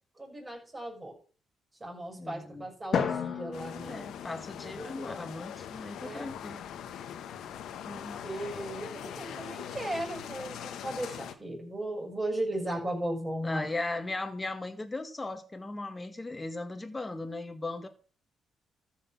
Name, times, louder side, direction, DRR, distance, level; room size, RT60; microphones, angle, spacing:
voice 1, 0.2-1.1 1.8-4.1 4.6-5.1 6.0-6.3 7.7-13.7, right 1 dB, 20° right, 6.8 m, -37 dB
voice 2, 2.1-2.7 3.9-6.7 7.9-8.2 13.4-17.9, left 2 dB, 20° left, 2.0 m, -37 dB
Drum, 2.9-5.2, left 7 dB, 60° left, 2.0 m, -34 dB
sound 1, 3.5-11.3, left 9 dB, 75° left, 1.3 m, -42 dB
13.5 x 6.4 x 6.1 m
cardioid pair, 90°, 0 cm